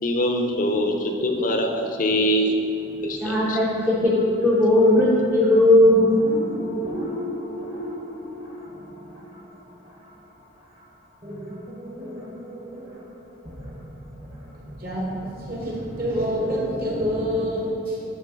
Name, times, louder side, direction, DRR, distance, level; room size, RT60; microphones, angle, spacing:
voice 1, 0.0-2.5 3.0-3.6, equal, 40° left, 3 dB, 0.5 m, -23 dB
sound 1, 2.7-10.1 10.4-10.5 10.8-10.9 11.2-17.5, equal, 25° right, 0.9 m, -33 dB
voice 2, 3.2-4.1 4.4-6.0, left 1 dB, 10° right, -6 dB, 0.5 m, -17 dB
voice 3, 14.8-18.0, equal, 45° right, -3 dB, 1.1 m, -27 dB
9.3 x 3.5 x 3.7 m, 2.7 s
head